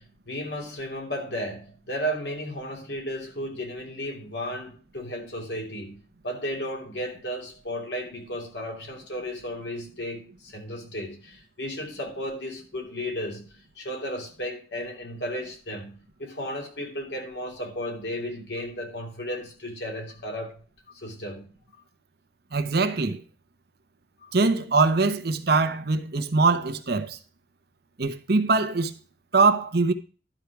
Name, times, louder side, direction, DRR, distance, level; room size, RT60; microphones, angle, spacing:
voice 1, 0.0-6.0 6.2-13.4 13.8-20.6 20.9-21.5 24.2-24.3, equal, 75° left, 3.1 m, -34 dB
voice 2, 22.5-23.2 24.3-27.2 28.0-28.9 29.3-29.9, right 3 dB, 65° right, 0.9 m, -22 dB
12.0 x 4.6 x 6.0 m
head